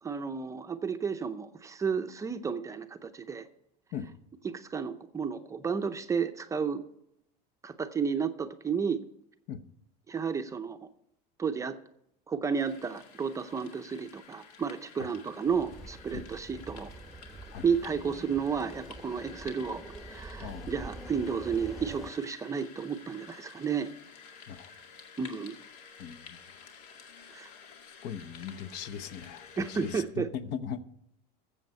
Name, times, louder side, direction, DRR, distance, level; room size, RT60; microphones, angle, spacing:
voice 1, 0.0-3.5 4.4-6.8 7.6-9.0 10.1-10.8 11.4-11.8 12.3-16.9 17.6-19.8 20.1-23.9 25.2-25.6 27.3-27.5 29.6-30.3, right 6 dB, 15° right, 0.6 m, -32 dB
sound 1, 12.5-30.0, left 6 dB, 80° left, 2.0 m, -52 dB
sound 2, 15.5-22.1, right 2 dB, ahead, 0.9 m, -45 dB
voice 2, 28.0-30.8, left 8 dB, 55° left, 0.9 m, -39 dB
14.0 x 7.7 x 5.4 m
supercardioid pair, 145°, 20 cm